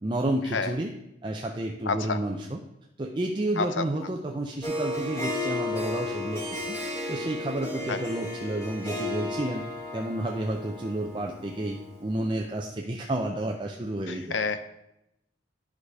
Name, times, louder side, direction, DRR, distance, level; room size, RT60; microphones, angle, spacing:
voice 1, 0.0-0.9 1.2-2.6 3.0-6.8 7.1-9.6 9.9-14.4, right 1 dB, 25° right, 1 dB, 0.5 m, -31 dB
voice 2, 1.9-2.2 3.6-3.8 7.9-8.0 14.1-14.6, left 4 dB, 85° left, 11 dB, 0.7 m, -28 dB
Harp, 4.6-12.1, left 2 dB, 15° left, 2.5 m, -34 dB
10.5 x 4.9 x 4.8 m, 0.85 s
head